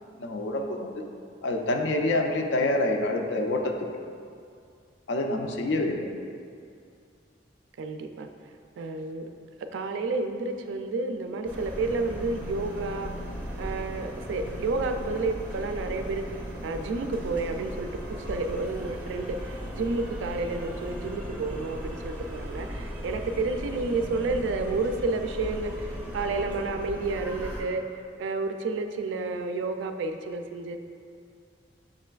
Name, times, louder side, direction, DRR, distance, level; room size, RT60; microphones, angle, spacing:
voice 1, 0.2-0.9 1.4-3.7 5.1-6.1, left 2 dB, 75° left, 3 dB, 0.4 m, -27 dB
voice 2, 7.8-8.3 8.8-9.2 9.7-13.1 13.6-16.2 16.6-27.8 28.2-30.8, right 3 dB, 85° right, 6 dB, 0.3 m, -30 dB
sound 1, 11.4-27.6, equal, 5° right, 0.5 m, -37 dB
6.6 x 3.2 x 2.3 m, 2.3 s
head